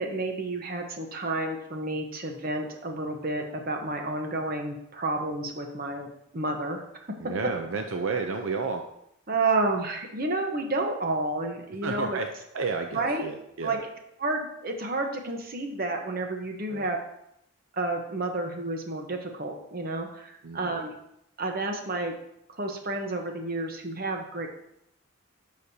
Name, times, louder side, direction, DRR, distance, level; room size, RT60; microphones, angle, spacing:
voice 1, 0.0-6.1 6.3-6.8 7.2-7.3 9.3-12.2 12.9-13.3 13.6-13.8 14.2-17.0 17.7-20.9 21.4-22.1 22.5-24.5, right 2 dB, 45° right, 3 dB, 1.0 m, -30 dB
voice 2, 7.2-8.8 11.8-12.3 12.5-13.8 16.7-16.9 20.4-20.8, right 4 dB, 70° right, 4 dB, 0.6 m, -31 dB
10.0 x 6.2 x 2.8 m, 0.77 s
head